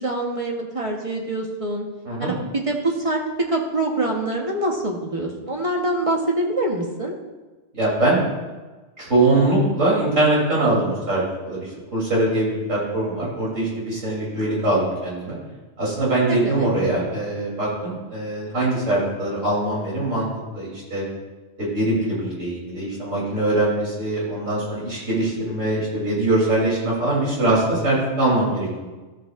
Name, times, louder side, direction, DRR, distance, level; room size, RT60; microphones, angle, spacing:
voice 1, 0.0-1.9 2.2-7.1 16.3-16.7, right 2 dB, 30° right, 0 dB, 1.1 m, -25 dB
voice 2, 7.7-8.3 9.0-15.4 15.8-21.0 21.6-28.9, right 2 dB, 80° right, -5 dB, 3.6 m, -22 dB
13.0 x 7.9 x 2.5 m, 1.3 s
omnidirectional pair, 1.3 m